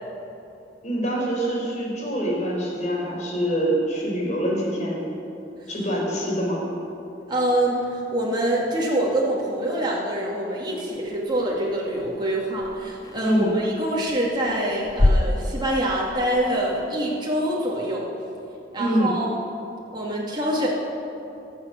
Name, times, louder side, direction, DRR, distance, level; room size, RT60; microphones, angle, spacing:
voice 1, 0.8-5.1 5.7-6.6 13.2-13.5 18.8-19.1, equal, 40° left, -3 dB, 4.8 m, -25 dB
voice 2, 7.3-18.1 18.7-19.3 19.9-20.7, right 1 dB, 25° right, -4 dB, 2.5 m, -25 dB
sound 1, 10.9-16.9, left 1 dB, 20° left, 0.4 m, -28 dB
25.0 x 8.3 x 7.0 m, 2.8 s
head